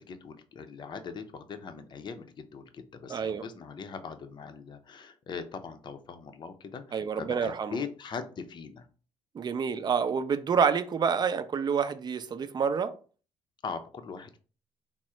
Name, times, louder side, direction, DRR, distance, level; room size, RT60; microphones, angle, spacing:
voice 1, 0.0-8.9 13.6-14.4, left 5 dB, 45° left, 0.6 m, -41 dB
voice 2, 3.1-3.4 6.9-7.8 9.3-12.9, right 6 dB, 40° right, 0.5 m, -28 dB
3.6 x 2.1 x 4.3 m
supercardioid pair, 75°, 11 cm